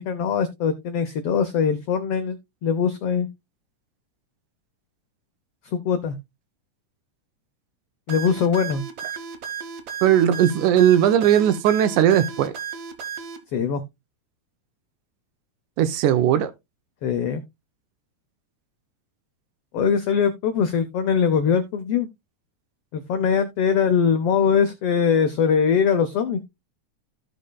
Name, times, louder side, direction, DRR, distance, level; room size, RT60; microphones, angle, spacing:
voice 1, 0.0-3.3 5.7-6.2 8.1-8.8 13.5-13.8 17.0-17.4 19.7-22.1 22.9-26.4, left 6 dB, 85° left, 1.3 m, -22 dB
sound 1, 8.1-13.4, right 7 dB, 65° right, 2.1 m, -34 dB
voice 2, 10.0-12.5 15.8-16.5, right 10 dB, 80° right, 2.2 m, -18 dB
15.0 x 5.2 x 2.2 m
omnidirectional pair, 3.6 m